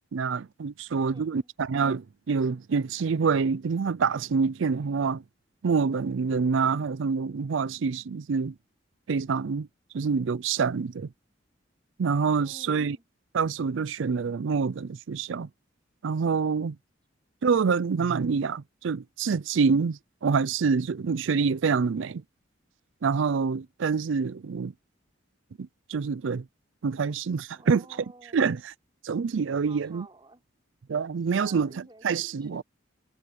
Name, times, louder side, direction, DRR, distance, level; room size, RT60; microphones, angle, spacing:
voice 1, 0.1-5.2 5.6-8.5 9.1-9.7 9.9-11.1 12.0-13.0 13.3-15.5 16.0-16.8 17.4-22.2 23.0-24.7 25.6-26.4 26.8-27.8 28.3-28.7 29.0-30.1 30.9-32.6, right 5 dB, 75° right, 0.4 m, -26 dB
voice 2, 1.0-1.5 12.4-13.1 27.5-28.5 29.6-30.4 31.2-32.6, right 2 dB, 25° right, 3.9 m, -52 dB
head